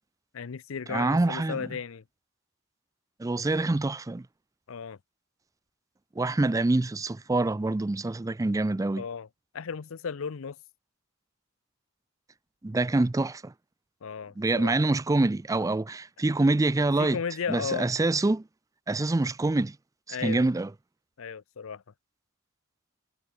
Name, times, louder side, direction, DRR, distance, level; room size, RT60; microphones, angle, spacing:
voice 1, 0.3-2.0 4.7-5.0 9.0-9.3 9.5-10.6 14.0-14.8 17.0-17.9 20.1-20.5 21.2-21.8, left 6 dB, 75° left, 0.6 m, -35 dB
voice 2, 0.9-1.6 3.2-4.3 6.2-9.0 12.6-13.5 14.4-17.2 17.5-18.4 18.9-19.8 20.1-20.7, right 2 dB, 15° right, 0.4 m, -26 dB
head